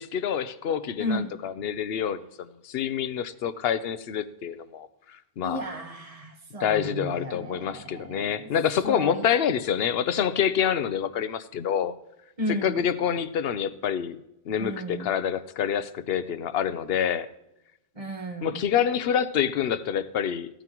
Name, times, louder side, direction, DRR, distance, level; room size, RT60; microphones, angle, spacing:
voice 1, 0.0-5.6 6.6-11.9 12.6-14.2 14.5-17.3 18.4-20.5, left 8 dB, 70° left, 13 dB, 0.9 m, -27 dB
voice 2, 1.0-1.3 5.4-8.5 8.8-9.3 12.4-12.8 14.6-15.1 17.9-18.6, equal, 35° right, 4 dB, 1.5 m, -34 dB
16.5 x 13.0 x 3.0 m, 0.89 s
omnidirectional pair, 1.0 m